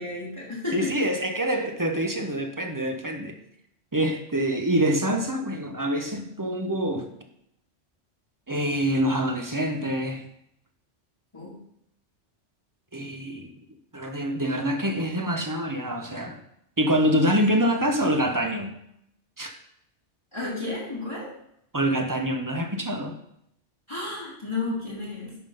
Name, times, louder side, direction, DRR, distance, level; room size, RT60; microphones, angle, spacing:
voice 1, 0.0-1.0 11.3-11.6 20.3-21.3 23.9-25.4, left 2 dB, 25° left, -6 dB, 2.1 m, -32 dB
voice 2, 0.7-3.4 3.9-7.1 8.5-10.3 12.9-13.5 13.9-16.4 16.8-18.7 19.4-19.5 21.7-23.2, equal, 20° right, 4 dB, 0.6 m, -25 dB
10.5 x 3.7 x 5.4 m, 0.75 s
omnidirectional pair, 1.2 m